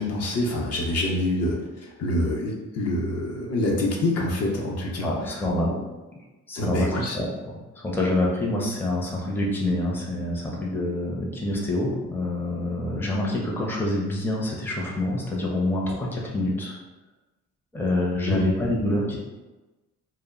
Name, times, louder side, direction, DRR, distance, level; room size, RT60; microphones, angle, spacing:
voice 1, 0.0-1.6 2.0-5.4 6.5-7.2 18.3-18.4, left 1 dB, 55° left, -2 dB, 0.7 m, -26 dB
voice 2, 5.0-5.8 6.5-7.3 7.8-16.8 17.7-19.2, left 1 dB, 5° left, -3 dB, 0.6 m, -26 dB
2.2 x 2.1 x 3.6 m, 1.1 s
cardioid pair, 90°, 30 cm